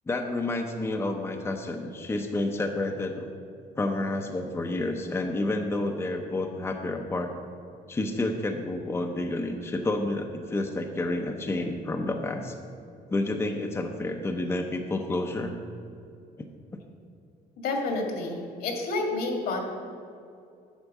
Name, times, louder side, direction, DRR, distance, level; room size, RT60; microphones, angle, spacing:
voice 1, 0.1-3.3 3.8-7.3 7.9-12.6 13.1-15.5, left 2 dB, 15° left, 3 dB, 0.6 m, -29 dB
voice 2, 17.6-19.6, left 2 dB, 70° left, 2 dB, 1.7 m, -29 dB
8.1 x 4.5 x 7.2 m, 2.5 s
cardioid pair, 110°, 17 cm